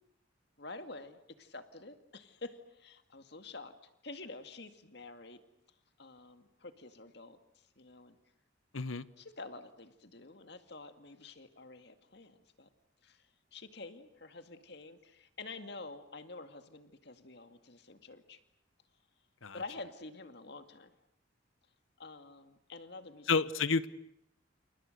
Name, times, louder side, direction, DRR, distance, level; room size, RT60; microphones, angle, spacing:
voice 1, 0.6-3.7 4.0-5.4 6.0-8.2 9.2-12.7 13.0-13.2 13.5-18.4 19.5-20.9 22.0-23.3, left 3 dB, 55° left, 9 dB, 2.2 m, -48 dB
voice 2, 8.7-9.0 19.4-19.6 23.3-23.9, left 4 dB, 80° left, 16 dB, 1.1 m, -30 dB
29.0 x 29.0 x 6.7 m, 0.78 s
head